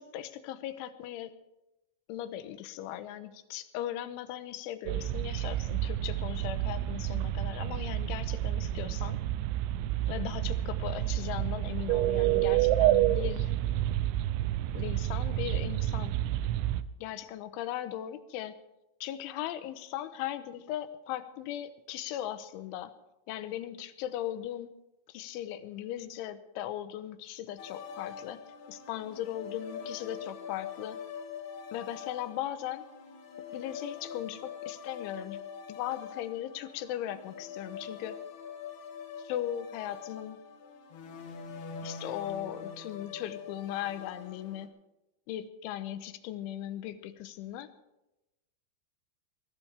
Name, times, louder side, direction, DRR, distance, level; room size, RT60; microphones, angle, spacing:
voice 1, 0.0-1.3 2.1-9.2 10.1-13.5 14.7-16.2 17.0-18.5 19.0-22.9 23.3-24.7 25.1-28.4 28.7-31.0 31.7-32.8 33.4-35.4 35.7-38.2 39.2-40.4 41.8-44.7 45.3-47.7, left 12 dB, 80° left, 11 dB, 3.3 m, -38 dB
sound 1, 4.9-16.8, right 13 dB, 80° right, 2.8 m, -29 dB
sound 2, 27.6-44.7, left 6 dB, 60° left, 2.1 m, -44 dB
22.0 x 18.0 x 3.5 m, 0.94 s
omnidirectional pair, 5.6 m